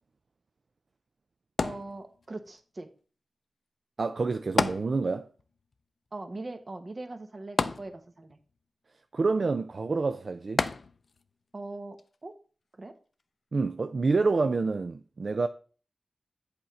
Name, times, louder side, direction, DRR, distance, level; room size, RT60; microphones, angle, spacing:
sound 1, 1.6-2.5 4.6-5.4 5.7-5.8 7.6-8.4 10.6-11.3 12.0-12.1, left 4 dB, 70° left, 0.4 m, -30 dB
voice 1, 1.6-2.9 6.1-8.4 11.5-12.3 12.8-13.0, right 2 dB, 50° right, 1.1 m, -41 dB
voice 2, 4.0-5.3 9.1-10.6 13.5-15.5, right 3 dB, 65° right, 0.4 m, -27 dB
8.0 x 4.3 x 5.1 m
cardioid pair, 50°, 0 cm